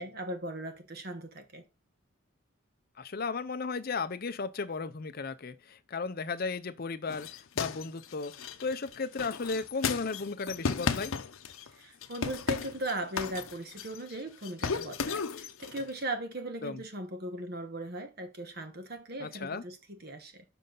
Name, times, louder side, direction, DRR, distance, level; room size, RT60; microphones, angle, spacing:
voice 1, 0.0-1.7 11.8-20.4, right 1 dB, 50° right, 1.3 m, -38 dB
voice 2, 3.0-7.3 7.6-8.3 8.6-11.2 16.6-16.8 19.2-19.6, left 4 dB, 45° left, 0.6 m, -35 dB
sound 1, 7.1-11.7 12.0-14.2 14.4-15.9, left 5 dB, 85° left, 0.7 m, -35 dB
6.9 x 5.5 x 3.9 m
head